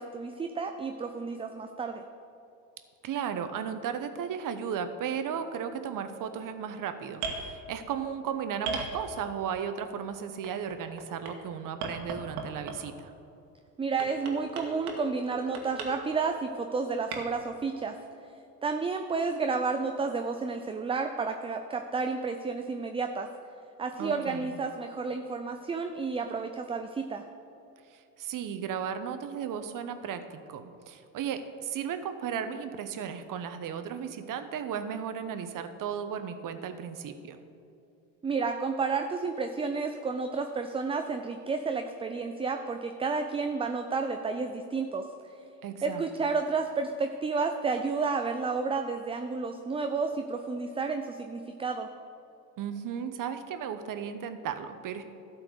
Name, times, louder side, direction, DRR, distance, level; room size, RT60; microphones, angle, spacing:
voice 1, 0.0-2.0 13.8-18.0 18.6-23.3 23.8-27.2 38.2-45.1 45.8-51.9, right 4 dB, 15° right, 6 dB, 0.4 m, -31 dB
voice 2, 3.0-13.1 24.0-24.6 27.9-37.4 45.6-46.3 52.6-55.0, right 7 dB, 45° right, 9 dB, 1.0 m, -35 dB
sound 1, 7.1-7.4 8.6-9.4 10.4-11.3 11.8-12.9 14.0-15.0 15.3-15.9 17.1-17.2, right 5 dB, 80° right, 1.7 m, -35 dB
12.5 x 4.5 x 8.0 m, 2.7 s
hypercardioid pair, 75°, 44 cm